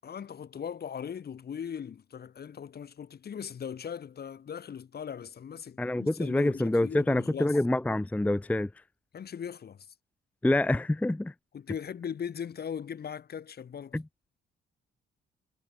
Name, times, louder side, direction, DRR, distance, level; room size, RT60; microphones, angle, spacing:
voice 1, 0.0-7.6 9.1-9.9 11.5-14.0, left 8 dB, 50° left, 5.8 m, -39 dB
voice 2, 5.8-8.7 10.4-11.3 13.9-14.0, left 1 dB, 5° left, 0.7 m, -26 dB
cardioid pair, 90°, 20 cm